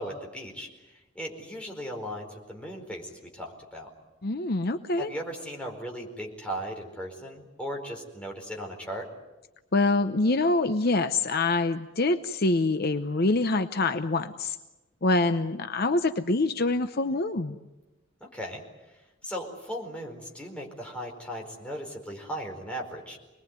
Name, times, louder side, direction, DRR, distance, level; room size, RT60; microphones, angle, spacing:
voice 1, 0.0-3.9 5.0-9.1 18.2-18.6 19.2-23.2, equal, 5° left, 0 dB, 4.6 m, -37 dB
voice 2, 4.2-5.1 9.7-14.6 15.0-17.6, left 2 dB, 50° left, 9 dB, 0.8 m, -25 dB
26.5 x 20.5 x 9.4 m, 1.1 s
head